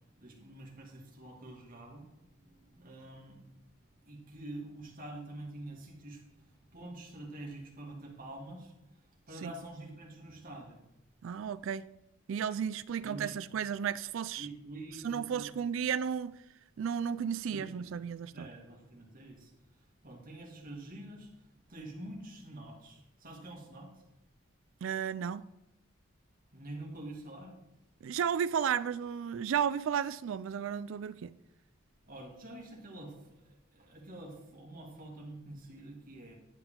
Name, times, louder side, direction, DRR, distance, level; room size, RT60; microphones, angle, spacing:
voice 1, 0.2-3.6 4.0-8.7 9.3-10.8 13.0-13.3 14.4-15.5 17.4-17.9 18.3-19.5 20.0-21.3 21.7-23.9 26.5-27.5 32.0-36.3, right 1 dB, 45° right, 2.4 m, -47 dB
voice 2, 11.2-11.9 12.3-14.5 15.0-16.4 16.8-18.5 24.8-25.5 28.0-31.3, right 7 dB, 70° right, 0.3 m, -33 dB
10.5 x 8.0 x 3.8 m
head